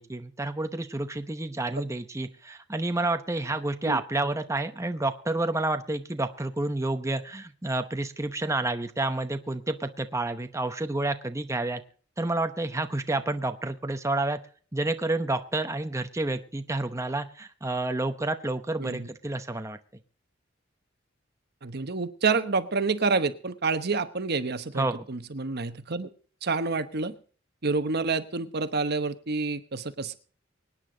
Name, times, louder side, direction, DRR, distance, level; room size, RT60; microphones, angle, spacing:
voice 1, 0.0-11.8 12.2-14.4 14.7-19.8 24.7-25.1, right 2 dB, 15° right, 8 dB, 0.8 m, -29 dB
voice 2, 21.6-26.1 26.4-27.1 27.6-30.2, right 4 dB, 55° right, 11 dB, 1.1 m, -28 dB
24.5 x 9.6 x 3.9 m, 0.42 s
head